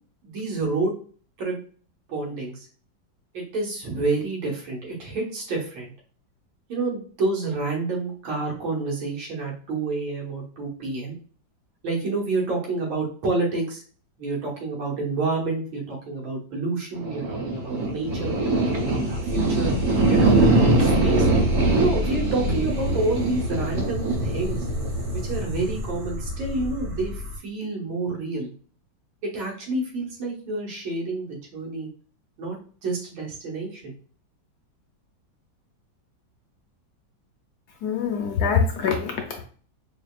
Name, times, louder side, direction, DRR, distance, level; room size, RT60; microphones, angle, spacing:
voice 1, 0.2-0.9 1.4-1.6 2.1-2.7 3.3-5.9 6.7-11.2 11.8-13.8 14.2-19.7 20.1-21.3 21.7-24.6 25.1-28.5 29.2-31.9 32.4-32.6 32.8-33.9, right 3 dB, 85° right, -3 dB, 2.1 m, -28 dB
sound 1, 16.9-27.4, right 2 dB, 60° right, 1.2 m, -23 dB
voice 2, 37.8-39.4, left 6 dB, 70° left, 2 dB, 1.0 m, -24 dB
5.0 x 2.8 x 2.3 m, 0.42 s
omnidirectional pair, 2.1 m